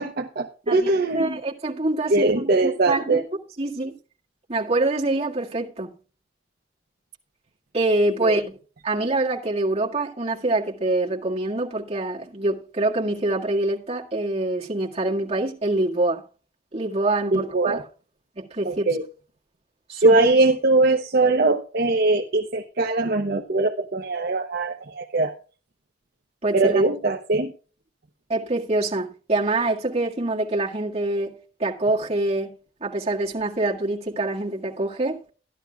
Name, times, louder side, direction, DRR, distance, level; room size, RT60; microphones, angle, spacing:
voice 1, 0.0-1.4 2.1-3.2 8.2-8.4 17.3-17.8 18.6-19.0 20.0-25.3 26.5-27.5, right 2 dB, 55° right, 0.9 m, -21 dB
voice 2, 0.7-3.2 3.6-4.0 4.5-5.9 7.7-8.6 8.8-16.2 16.7-17.8 18.4-18.9 19.9-20.2 26.4-26.8 28.3-32.5 32.8-35.2, right 2 dB, 35° right, 1.9 m, -25 dB
14.5 x 11.5 x 2.3 m
head